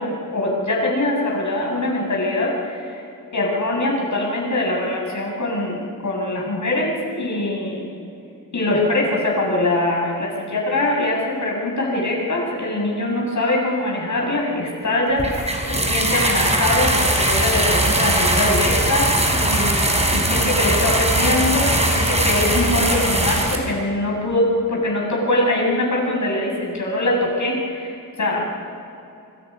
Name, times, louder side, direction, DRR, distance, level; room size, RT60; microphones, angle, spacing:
voice 1, 0.0-3.0 3.3-7.9 8.5-28.5, left 1 dB, 55° left, -2 dB, 7.7 m, -23 dB
sound 1, 15.2-23.6, right 1 dB, 20° right, 4.3 m, -20 dB
26.5 x 25.5 x 5.5 m, 2.7 s
wide cardioid pair, 95°, 35 cm